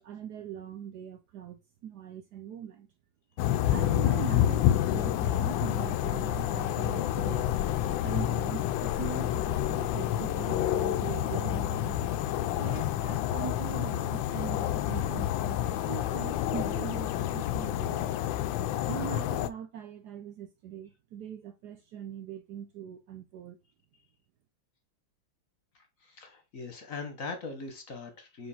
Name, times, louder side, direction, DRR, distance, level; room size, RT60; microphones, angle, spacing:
voice 1, 0.0-2.9 3.7-7.5 8.0-12.2 12.6-18.2 18.9-23.6, right 10 dB, 70° right, 1.0 m, -41 dB
sound 1, 3.4-19.5, left 12 dB, 80° left, 1.3 m, -29 dB
voice 2, 25.7-28.5, left 4 dB, 50° left, 1.3 m, -41 dB
4.9 x 3.8 x 5.5 m
omnidirectional pair, 2.1 m